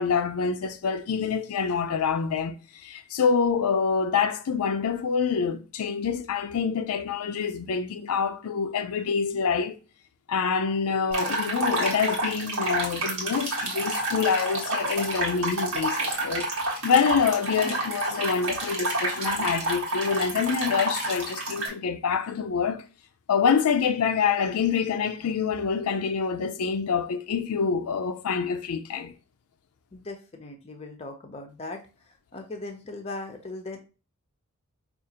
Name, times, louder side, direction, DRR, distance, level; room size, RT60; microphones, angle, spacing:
voice 1, 0.0-9.8 10.3-16.5 16.8-22.8 23.3-29.1, left 6 dB, 90° left, 0.4 m, -26 dB
sound 1, 11.1-21.7, right 2 dB, 80° right, 1.2 m, -29 dB
voice 2, 29.9-31.8 32.3-33.8, left 2 dB, 30° left, 0.5 m, -38 dB
4.8 x 2.4 x 2.8 m
head